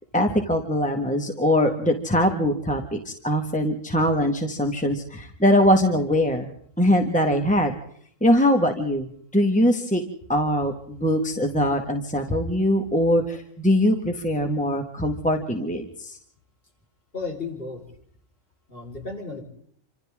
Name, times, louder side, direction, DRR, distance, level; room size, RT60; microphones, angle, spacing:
voice 1, 0.1-6.5 6.8-7.7 8.2-10.0 10.3-16.2, equal, 5° left, 4 dB, 1.9 m, -22 dB
voice 2, 17.1-17.8 18.7-19.4, left 4 dB, 50° left, 0 dB, 5.2 m, -34 dB
28.0 x 26.5 x 3.8 m, 0.62 s
omnidirectional pair, 1.3 m